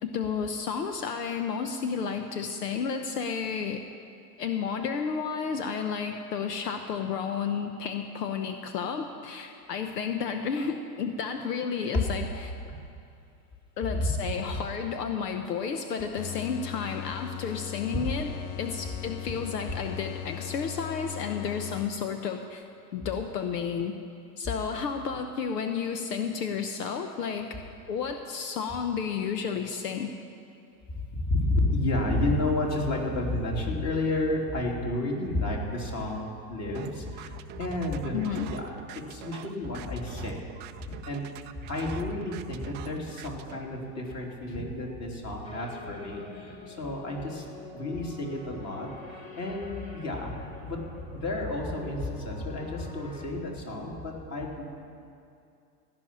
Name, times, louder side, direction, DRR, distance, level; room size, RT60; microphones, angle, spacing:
voice 1, 0.0-3.8 4.4-12.5 13.8-18.3 18.6-22.6 22.9-23.9 24.4-27.5 27.9-30.1 38.1-38.5, left 6 dB, 80° left, 7 dB, 0.9 m, -32 dB
sound 1, 16.2-22.3, left 16 dB, 60° left, 0.6 m, -39 dB
voice 2, 31.1-38.2 38.5-38.7 39.1-40.4 40.8-41.2 41.6-47.4 47.7-50.8 51.1-54.7, left 1 dB, 30° left, -1 dB, 3.1 m, -31 dB
sound 2, 36.7-43.6, right 13 dB, 25° right, 0.3 m, -45 dB
sound 3, 45.4-53.3, left 3 dB, 15° left, 2.2 m, -47 dB
16.5 x 6.1 x 9.9 m, 2.5 s
hypercardioid pair, 100°, 48 cm